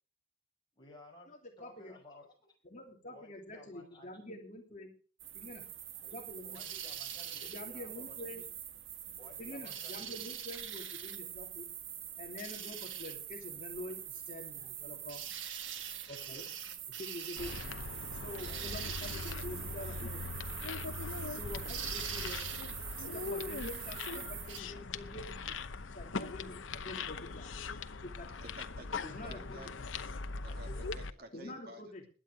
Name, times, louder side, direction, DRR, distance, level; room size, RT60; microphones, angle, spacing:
voice 1, 0.7-2.3 3.1-4.1 6.0-6.1 6.4-8.5 9.2-10.2 16.3-16.6 17.3-17.5 18.4-18.8 19.2-19.3 21.7-21.9 29.3-29.4 30.5-30.9, left 1 dB, 25° left, 0 dB, 6.5 m, -55 dB
voice 2, 1.3-1.9 2.7-4.9 5.3-5.6 6.1-6.6 7.4-8.4 9.4-11.7 12.2-15.2 16.1-16.4 17.0-17.5 18.2-20.2 21.2-22.5 23.0-25.5 25.9-27.5 28.0-28.3 29.0-29.7 31.3-32.0, left 1 dB, 40° left, 2 dB, 3.0 m, -46 dB
sound 1, 5.2-24.6, right 9 dB, 85° right, 1.6 m, -43 dB
sound 2, 17.4-31.1, left 4 dB, 90° left, 0.9 m, -41 dB
voice 3, 28.4-29.9 30.4-31.8, right 1 dB, 55° right, 5 dB, 2.7 m, -52 dB
21.0 x 9.0 x 5.0 m, 0.39 s
head